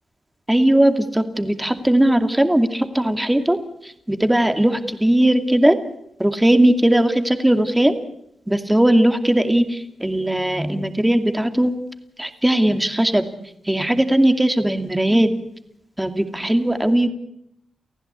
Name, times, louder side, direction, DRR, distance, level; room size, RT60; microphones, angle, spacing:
voice 1, 0.5-3.6 4.1-5.8 6.2-8.0 8.5-11.7 12.2-13.2 13.7-15.3 16.0-17.1, right 1 dB, 10° right, 7 dB, 2.5 m, -18 dB
29.5 x 15.0 x 8.3 m, 0.77 s
cardioid pair, 55°, 0 cm